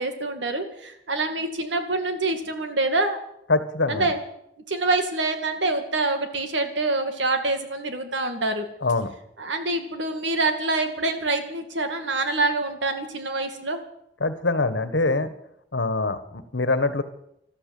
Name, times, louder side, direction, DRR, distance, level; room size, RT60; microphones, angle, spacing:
voice 1, 0.0-3.2 3.9-4.2 4.7-8.7 9.4-13.8, right 2 dB, 85° right, 6 dB, 2.3 m, -26 dB
voice 2, 3.5-4.1 8.8-9.1 14.2-15.3 15.7-17.0, left 3 dB, 75° left, 12 dB, 1.4 m, -24 dB
13.5 x 13.0 x 7.8 m, 0.77 s
head